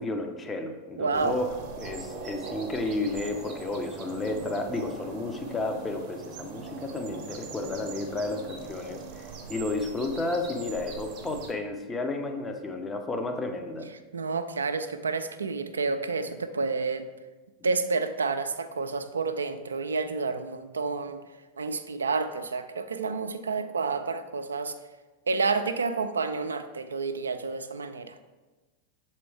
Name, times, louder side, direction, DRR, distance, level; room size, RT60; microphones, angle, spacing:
voice 1, 0.0-1.5 1.8-13.9, left 2 dB, 15° left, 4 dB, 0.6 m, -32 dB
voice 2, 1.0-1.4 14.1-17.1 17.6-21.2 21.6-24.7 25.3-28.1, right 4 dB, 75° right, 9 dB, 0.3 m, -29 dB
sound 1, 1.1-11.5, right 4 dB, 40° right, 0.8 m, -41 dB
6.7 x 4.4 x 3.4 m, 1.3 s
figure-of-eight pair, 90°, 0 cm